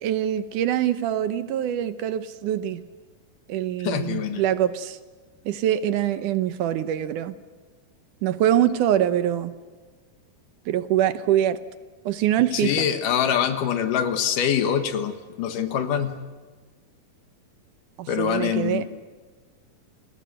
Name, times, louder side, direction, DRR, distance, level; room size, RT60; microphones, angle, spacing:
voice 1, 0.0-2.8 3.5-5.0 5.5-7.4 8.2-9.6 10.7-11.6 12.1-12.9 18.0-18.8, right 11 dB, 75° right, 12 dB, 2.3 m, -24 dB
voice 2, 3.8-4.4 12.5-16.2 18.1-18.9, left 8 dB, 75° left, 9 dB, 3.0 m, -24 dB
29.5 x 21.5 x 7.8 m, 1.4 s
omnidirectional pair, 3.9 m